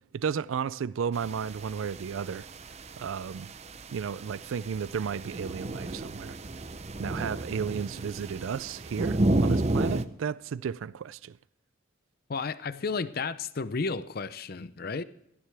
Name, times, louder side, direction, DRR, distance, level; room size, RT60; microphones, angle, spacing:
voice 1, 0.1-2.5 3.0-3.5 3.9-6.4 7.0-11.4, right 6 dB, 80° right, 0.4 m, -33 dB
sound 1, 1.1-10.0, right 1 dB, 35° right, 0.7 m, -32 dB
voice 2, 12.3-15.0, left 4 dB, 50° left, 0.6 m, -32 dB
17.5 x 14.5 x 3.4 m
head